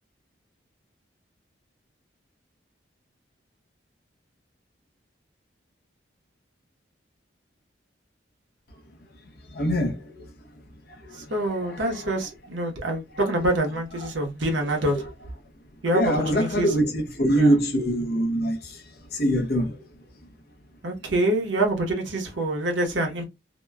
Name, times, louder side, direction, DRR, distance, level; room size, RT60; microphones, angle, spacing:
voice 1, 9.5-10.2 11.1-11.2 11.6-12.0 15.9-18.8 19.1-19.8, right 1 dB, 55° left, 0.7 m, -24 dB
voice 2, 11.1-15.0 15.8-16.7 17.4-17.6 20.8-23.2, right 1 dB, 80° right, 0.9 m, -26 dB
2.8 x 2.2 x 2.2 m
head